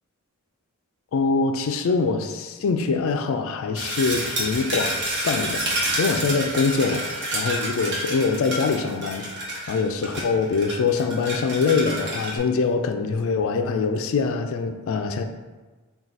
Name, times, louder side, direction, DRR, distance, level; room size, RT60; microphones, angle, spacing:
voice 1, 1.1-4.9 5.2-15.2, left 4 dB, 65° left, 7 dB, 0.4 m, -24 dB
sound 1, 3.7-12.4, right 1 dB, 55° right, 1.0 m, -29 dB
4.5 x 2.3 x 4.0 m, 1.3 s
head